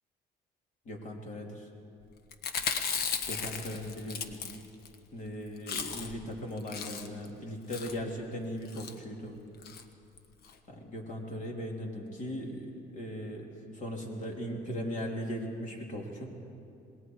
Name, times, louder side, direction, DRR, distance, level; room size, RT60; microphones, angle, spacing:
voice 1, 0.9-1.7 3.2-4.4 5.1-9.4 10.7-13.5 13.7-16.3, equal, 50° left, 0 dB, 3.5 m, -38 dB
Chewing mastication, 2.3-4.9 5.3-5.4 5.6-6.3 6.6-7.3 7.7-8.0 8.6-8.9 9.6-9.8 10.2-10.3 10.4-10.5, left 6 dB, 70° left, 1.3 m, -35 dB
26.5 x 20.5 x 4.8 m, 2.6 s
cardioid pair, 110°, 17 cm